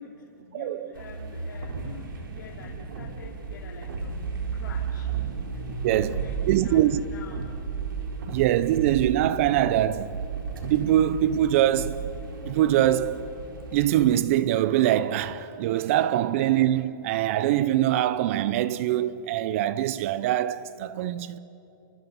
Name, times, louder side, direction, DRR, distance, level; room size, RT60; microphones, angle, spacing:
voice 1, 0.0-5.1 5.5-7.4, left 5 dB, 65° left, 2.6 m, -46 dB
voice 2, 0.5-0.9 5.8-6.2 6.5-7.0 8.3-10.2 10.7-12.0 12.4-13.2 13.7-21.4, right 12 dB, 40° right, 0.6 m, -23 dB
sound 1, 0.9-14.0, right 5 dB, 75° right, 4.0 m, -34 dB
29.0 x 24.5 x 5.4 m
hypercardioid pair, 155°, 11 cm